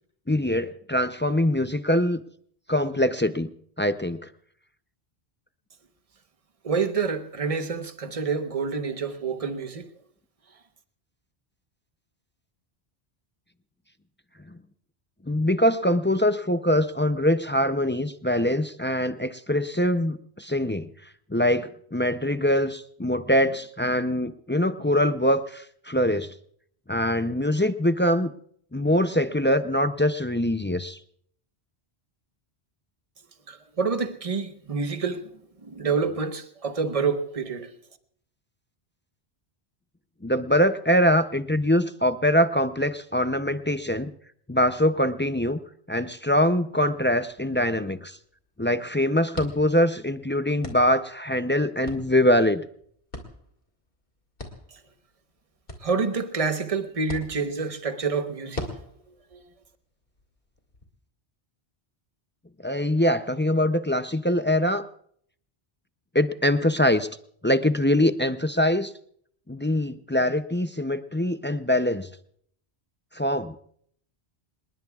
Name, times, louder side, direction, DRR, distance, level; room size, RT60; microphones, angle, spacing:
voice 1, 0.3-2.2 2.7-3.5 3.8-4.3 15.3-20.9 21.3-26.3 26.9-28.3 28.7-31.0 40.2-44.1 44.5-45.6 45.9-48.2 48.6-52.6 62.6-64.9 66.1-67.1 67.4-68.9 69.5-72.1 73.1-73.6, left 1 dB, 15° left, 0.4 m, -23 dB
voice 2, 6.6-9.9 33.5-37.8 54.7-54.8 55.8-58.7 59.1-59.4, right 5 dB, 35° right, 1.1 m, -28 dB
sound 1, 46.7-60.9, left 1 dB, 55° left, 2.5 m, -44 dB
27.0 x 20.0 x 2.4 m
omnidirectional pair, 1.1 m